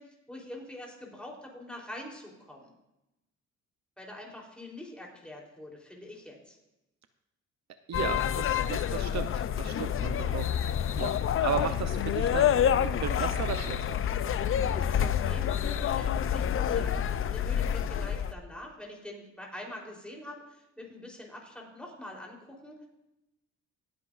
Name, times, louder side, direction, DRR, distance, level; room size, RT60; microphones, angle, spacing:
voice 1, 0.0-2.7 4.0-6.6 14.6-17.0 17.3-22.9, left 1 dB, 5° left, -2 dB, 3.6 m, -45 dB
sound 1, 7.9-18.3, left 9 dB, 45° left, 0.5 m, -28 dB
voice 2, 7.9-10.5 11.0-11.1 11.4-12.6 12.8-14.0, right 8 dB, 65° right, 9 dB, 0.7 m, -35 dB
19.0 x 8.6 x 2.5 m, 0.93 s
cardioid pair, 90°, 30 cm